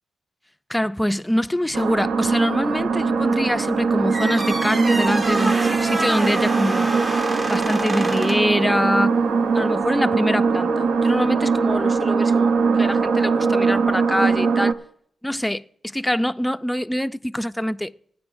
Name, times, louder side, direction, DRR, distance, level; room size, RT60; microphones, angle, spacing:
voice 1, 0.7-6.9 7.5-9.2 9.5-14.8 15.2-17.9, equal, 5° left, 0.4 m, -24 dB
sound 1, 1.7-14.7, right 5 dB, 75° right, 0.7 m, -21 dB
sound 2, 4.1-8.6, right 2 dB, 30° right, 1.0 m, -27 dB
19.5 x 9.6 x 2.6 m
cardioid pair, 75°, 0 cm